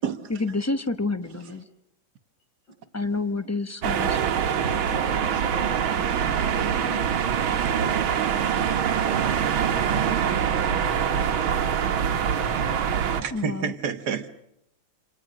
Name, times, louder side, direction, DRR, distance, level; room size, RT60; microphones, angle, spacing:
voice 1, 0.3-1.6 2.9-4.2 13.3-13.7, left 3 dB, 15° left, 0.5 m, -28 dB
sound 1, 3.8-13.2, right 8 dB, 85° right, 2.0 m, -24 dB
voice 2, 4.4-7.3 7.7-7.9 9.0-11.4 11.8-13.0, equal, 65° left, 8.8 m, -41 dB
voice 3, 13.2-14.3, right 7 dB, 55° right, 1.7 m, -29 dB
27.5 x 27.5 x 6.4 m
omnidirectional pair, 2.2 m